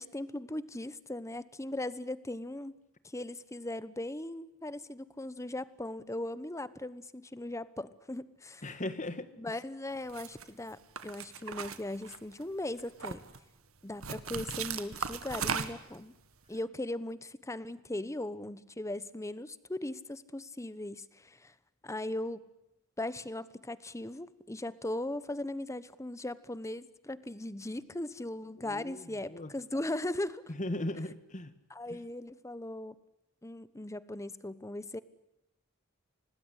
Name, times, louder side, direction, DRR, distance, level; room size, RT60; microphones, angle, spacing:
voice 1, 0.0-2.8 3.0-8.8 9.4-13.2 13.8-16.1 16.5-21.5 21.8-22.4 23.0-30.4 31.7-32.9 33.4-35.0, left 1 dB, 15° left, 16 dB, 1.0 m, -38 dB
voice 2, 8.6-9.5 28.6-29.5 30.6-31.5, left 1 dB, 35° left, 12 dB, 1.7 m, -38 dB
sound 1, 10.1-10.4 11.0-12.4 12.8-13.4 14.0-16.0, right 6 dB, 80° right, 2.0 m, -37 dB
26.0 x 19.5 x 10.0 m, 0.90 s
head